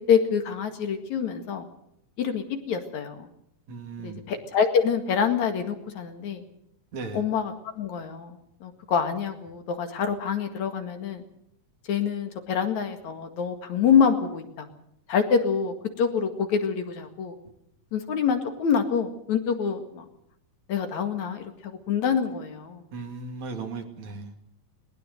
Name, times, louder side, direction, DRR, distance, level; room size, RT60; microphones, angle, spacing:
voice 1, 0.1-1.7 2.2-3.3 4.0-6.4 7.1-11.2 11.9-14.7 15.1-17.4 17.9-20.0 20.7-22.9, left 7 dB, 65° left, 6 dB, 3.2 m, -26 dB
voice 2, 3.7-4.2 6.9-7.2 22.9-24.3, right 4 dB, 65° right, 5 dB, 3.7 m, -36 dB
20.0 x 20.0 x 6.6 m, 0.75 s
omnidirectional pair, 3.7 m